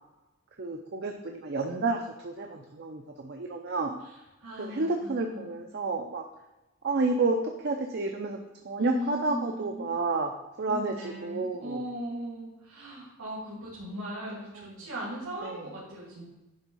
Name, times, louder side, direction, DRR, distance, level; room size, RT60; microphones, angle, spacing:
voice 1, 0.6-4.0 4.6-6.2 6.8-10.3 10.6-11.8 14.3-14.7 15.4-15.6, right 3 dB, 50° right, 3 dB, 0.6 m, -30 dB
voice 2, 4.0-5.6 8.8-9.9 10.7-16.2, equal, 70° right, -7 dB, 2.5 m, -38 dB
10.5 x 3.5 x 5.4 m, 1.0 s
head